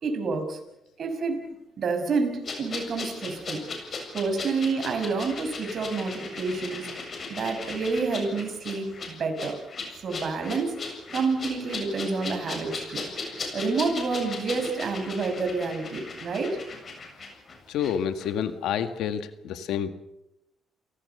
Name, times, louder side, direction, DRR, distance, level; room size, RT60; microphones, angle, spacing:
voice 1, 0.0-0.6 1.0-1.5 1.8-3.6 4.1-6.9 7.3-9.6 10.0-10.8 11.1-13.1 13.5-16.6, right 4 dB, 55° right, 5 dB, 6.0 m, -28 dB
sound 1, 2.4-17.9 18.2-18.3, left 3 dB, 45° left, 7.4 m, -37 dB
voice 2, 17.7-19.9, left 8 dB, 85° left, 9 dB, 1.9 m, -28 dB
29.5 x 18.5 x 6.9 m, 0.87 s
cardioid pair, 90°, 0 cm